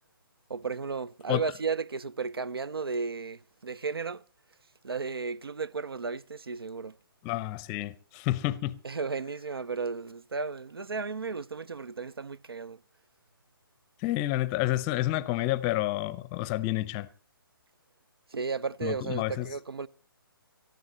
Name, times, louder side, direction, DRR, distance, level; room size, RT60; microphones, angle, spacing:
voice 1, 0.5-4.2 4.8-7.0 8.8-12.8 18.3-19.9, right 4 dB, 80° right, 0.7 m, -34 dB
voice 2, 7.2-8.8 14.0-17.1 18.8-19.5, left 16 dB, 20° left, 0.6 m, -29 dB
18.5 x 14.0 x 4.2 m
figure-of-eight pair, 140°, 12 cm